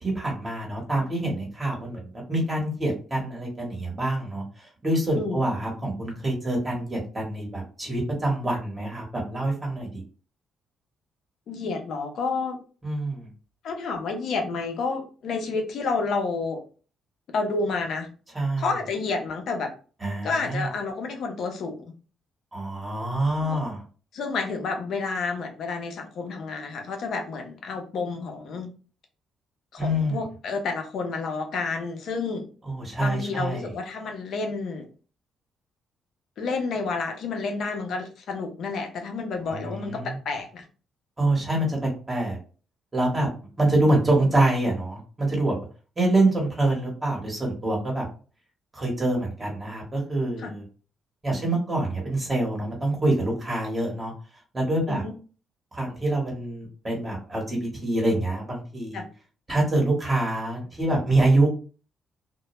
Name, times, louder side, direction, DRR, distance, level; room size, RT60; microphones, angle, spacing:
voice 1, 0.0-4.4 4.8-10.0 12.8-13.3 18.3-18.7 20.0-20.7 22.5-23.8 29.8-30.2 32.7-33.7 39.5-40.2 41.2-42.4 42.9-43.3 43.6-45.6 46.0-48.0 48.7-50.6 51.2-54.1 54.5-55.0 55.7-59.0 59.5-61.5, right 2 dB, 25° right, -2 dB, 1.0 m, -25 dB
voice 2, 11.5-12.6 13.6-16.6 17.3-18.1 18.6-19.7 20.2-21.8 23.4-23.6 24.1-28.7 29.7-32.5 33.0-34.9 36.4-40.6 50.4-50.5 54.9-55.1 58.9-59.0, left 4 dB, 70° left, 4 dB, 0.6 m, -30 dB
2.1 x 2.1 x 2.9 m, 0.37 s
cardioid pair, 90°, 0 cm